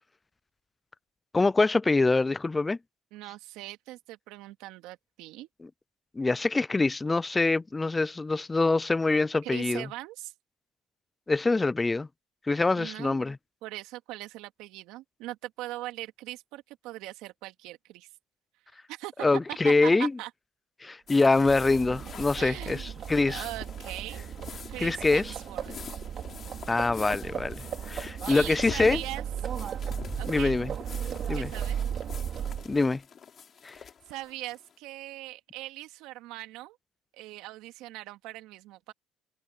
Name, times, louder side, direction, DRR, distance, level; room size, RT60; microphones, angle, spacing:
voice 1, 1.3-2.8 6.1-9.9 11.3-12.1 12.5-13.4 19.2-20.1 20.8-23.4 24.8-25.3 26.7-29.0 30.3-30.7 31.3-31.5 32.6-33.0 33.6-33.8, left 3 dB, 15° left, 0.4 m, -25 dB
voice 2, 3.1-5.5 9.4-10.3 12.8-13.2 13.6-18.1 18.9-19.3 19.6-20.3 22.3-22.9 23.2-24.3 24.7-25.9 28.3-29.2 30.2-30.6 31.3-31.8 34.1-36.8 37.1-38.9, right 17 dB, 75° right, 2.3 m, -40 dB
sound 1, 21.1-34.7, left 7 dB, 40° left, 4.0 m, -45 dB
Livestock farm animals working animals, 21.2-32.8, right 9 dB, 45° right, 4.6 m, -36 dB
cardioid pair, 120°, 0 cm